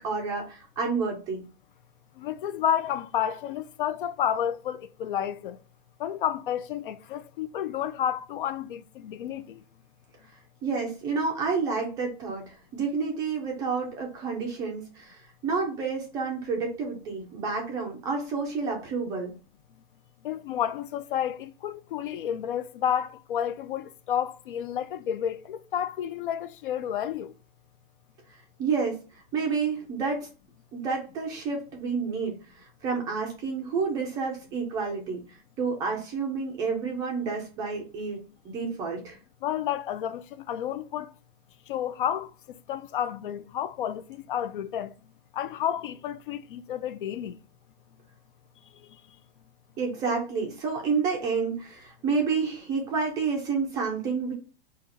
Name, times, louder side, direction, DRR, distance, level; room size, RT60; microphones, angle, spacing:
voice 1, 0.0-1.4 10.6-19.3 28.3-30.3 30.7-39.2 49.8-54.3, right 5 dB, 10° right, 0.4 m, -30 dB
voice 2, 2.2-5.6 6.0-9.6 20.2-27.3 39.4-41.1 41.7-42.3 42.7-44.9 45.3-47.4, left 9 dB, 60° left, 0.4 m, -30 dB
4.2 x 2.4 x 3.8 m
hypercardioid pair, 160°, 30 cm